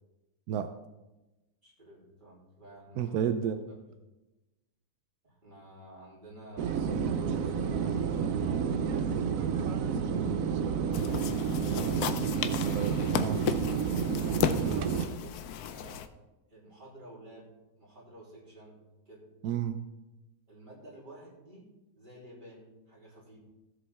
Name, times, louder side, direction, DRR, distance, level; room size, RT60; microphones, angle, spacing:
voice 1, 1.6-3.2 3.5-3.9 5.2-7.0 7.6-12.4 13.8-16.0 16.4-18.8 19.1-19.3 20.5-23.4, right 1 dB, 30° right, -5 dB, 3.3 m, -51 dB
voice 2, 3.0-3.7 12.7-13.5 19.4-19.8, right 8 dB, 85° right, 9 dB, 1.1 m, -31 dB
sound 1, 6.6-15.1, right 6 dB, 65° right, 1.1 m, -30 dB
sound 2, 10.9-16.1, left 9 dB, 90° left, 1.1 m, -34 dB
15.5 x 7.4 x 3.5 m, 1.0 s
omnidirectional pair, 1.6 m